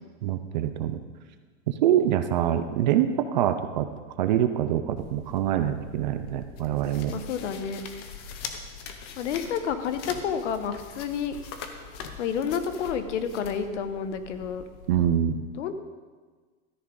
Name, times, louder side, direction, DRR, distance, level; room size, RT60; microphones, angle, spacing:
voice 1, 0.2-1.0 1.7-3.9 4.2-7.1 14.9-15.4, right 10 dB, 40° right, 9 dB, 0.4 m, -25 dB
sound 1, 5.0-15.1, left 6 dB, 20° left, 0.4 m, -42 dB
voice 2, 7.1-7.8 9.2-11.4 12.2-14.6 15.6-15.7, left 7 dB, 70° left, 9 dB, 1.1 m, -30 dB
13.5 x 9.6 x 3.8 m, 1.4 s
supercardioid pair, 170°, 38 cm